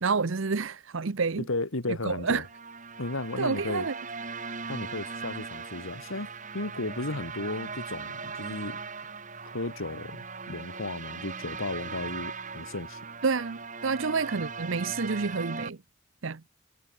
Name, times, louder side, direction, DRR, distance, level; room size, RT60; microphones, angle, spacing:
voice 1, 0.0-1.5 2.0-2.5 3.4-3.9 13.2-15.8 16.2-16.4, right 4 dB, 65° right, 0.7 m, -29 dB
voice 2, 1.5-2.4 3.0-3.9 4.7-6.3 6.5-8.8 9.4-13.0, left 2 dB, 75° left, 2.0 m, -34 dB
sound 1, 2.2-15.7, right 5 dB, 35° right, 4.2 m, -39 dB
head